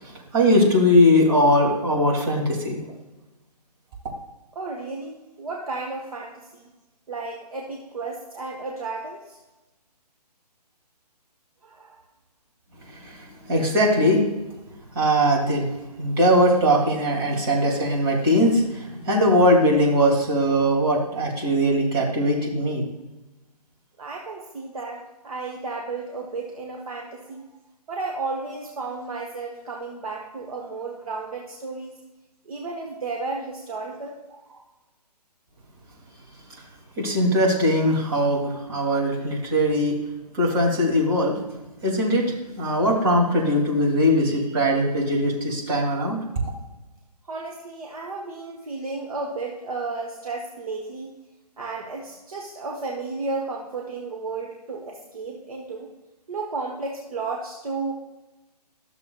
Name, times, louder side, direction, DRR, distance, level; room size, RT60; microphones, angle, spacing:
voice 1, 0.0-2.9 12.9-14.2 14.9-15.7 16.0-22.8 37.0-40.0 40.3-41.4 41.8-46.2, equal, 35° right, -3 dB, 2.5 m, -20 dB
voice 2, 4.5-6.7 7.1-9.4 11.6-12.0 24.0-27.5 27.9-31.9 32.5-34.6 47.3-51.2 51.6-55.9 56.3-57.9, right 3 dB, 60° right, 0 dB, 1.1 m, -33 dB
12.5 x 6.8 x 2.3 m, 1.1 s
figure-of-eight pair, 135°, 21 cm